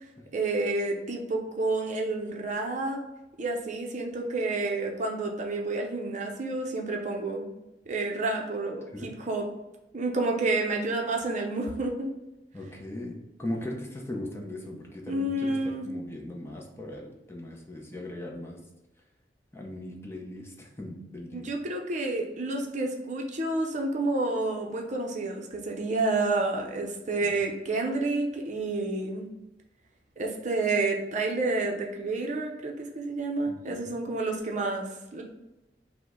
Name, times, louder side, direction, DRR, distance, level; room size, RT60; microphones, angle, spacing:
voice 1, 0.3-3.0 3.4-7.5 7.9-9.5 9.9-12.1 15.0-15.9 21.3-29.3 30.2-35.2, right 2 dB, 45° right, 2 dB, 0.6 m, -29 dB
voice 2, 12.5-15.6 15.8-18.6 19.5-21.5 27.2-27.4 33.5-34.0, left 1 dB, 15° left, -1 dB, 0.7 m, -39 dB
5.6 x 2.1 x 3.6 m, 0.96 s
head